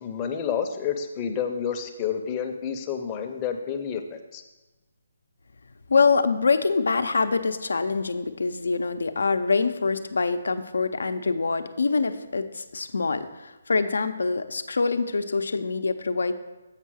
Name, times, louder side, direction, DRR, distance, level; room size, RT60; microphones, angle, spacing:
voice 1, 0.0-4.4, left 7 dB, 20° left, 4 dB, 0.6 m, -29 dB
voice 2, 5.9-16.3, left 4 dB, 85° left, 10 dB, 0.6 m, -25 dB
7.4 x 5.5 x 6.2 m, 1.1 s
hypercardioid pair, 170°, 0 cm